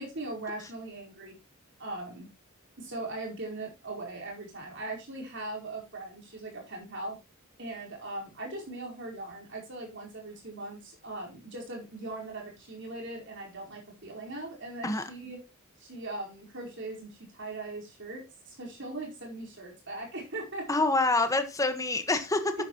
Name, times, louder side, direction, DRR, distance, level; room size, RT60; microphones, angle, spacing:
voice 1, 0.0-1.4 1.8-2.3 2.8-7.2 7.6-15.4 15.8-20.7 22.6-22.7, right 2 dB, 55° right, 4.7 m, -40 dB
voice 2, 20.7-22.6, left 2 dB, 15° left, 1.5 m, -26 dB
12.0 x 9.2 x 3.1 m
head